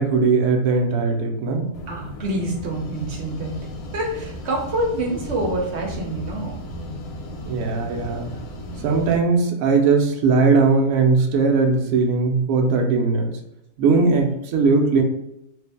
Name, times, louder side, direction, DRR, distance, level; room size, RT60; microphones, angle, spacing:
voice 1, 0.0-1.7 7.4-8.3 8.8-13.3 13.8-15.0, right 4 dB, 75° right, 2 dB, 1.0 m, -19 dB
sound 1, 1.7-9.2, left 1 dB, 80° left, 1.1 m, -35 dB
voice 2, 1.9-3.6 3.9-6.5, right 1 dB, 55° right, -1 dB, 1.0 m, -26 dB
3.1 x 2.5 x 3.4 m, 0.83 s
omnidirectional pair, 1.5 m